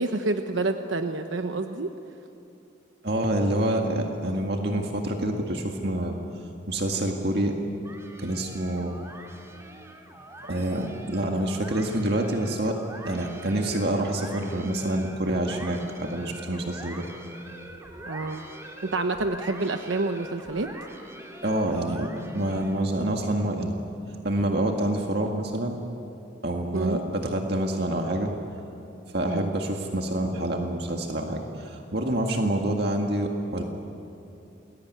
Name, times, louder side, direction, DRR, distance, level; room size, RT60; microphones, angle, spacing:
voice 1, 0.0-1.9 18.1-18.4 18.8-20.7 26.7-27.0 29.3-29.5, right 2 dB, 90° right, 6 dB, 1.1 m, -28 dB
voice 2, 3.0-6.2 6.7-7.6 8.2-9.0 10.5-12.8 13.1-17.1 21.4-23.8 24.2-25.8 26.4-28.3 29.1-33.6, right 1 dB, 60° right, 2 dB, 2.0 m, -27 dB
sound 1, 7.8-23.0, right 1 dB, 15° right, 2.6 m, -44 dB
29.0 x 21.0 x 9.5 m, 2.8 s
head